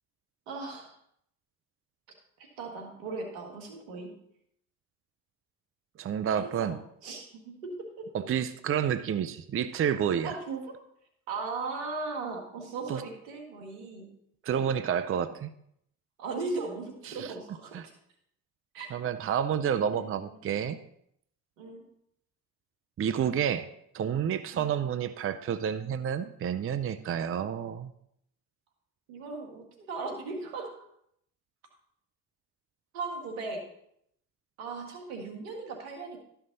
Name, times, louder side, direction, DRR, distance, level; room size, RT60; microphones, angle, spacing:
voice 1, 0.5-0.9 2.6-4.1 6.3-6.7 7.0-8.1 10.2-10.7 11.3-14.1 16.2-17.7 18.7-18.9 19.9-20.4 21.6-21.8 24.5-24.7 29.1-30.7 32.9-33.6 34.6-36.2, right 3 dB, 85° right, 2 dB, 1.9 m, -37 dB
voice 2, 6.0-6.8 8.1-10.3 12.9-13.0 14.4-15.5 17.1-17.3 17.7-17.9 18.9-20.8 23.0-23.7 23.9-27.9, right 8 dB, 35° right, 12 dB, 0.6 m, -29 dB
12.5 x 5.7 x 3.9 m, 0.72 s
hypercardioid pair, 60°, 40 cm